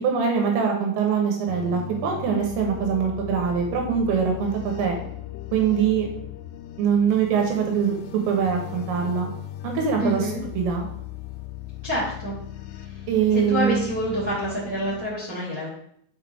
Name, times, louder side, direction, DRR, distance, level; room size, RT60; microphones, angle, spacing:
voice 1, 0.0-5.0 5.5-6.1 6.8-7.9 8.3-9.3 9.6-10.3 10.6-10.8 13.1-13.8, right 7 dB, 80° right, 2 dB, 3.0 m, -23 dB
sound 1, 1.5-15.1, left 12 dB, 85° left, 2.3 m, -37 dB
voice 2, 10.0-10.4 11.8-12.3 12.8-13.0 13.5-15.7, equal, 45° right, -8 dB, 1.1 m, -27 dB
6.4 x 5.0 x 3.4 m, 0.68 s
omnidirectional pair, 5.2 m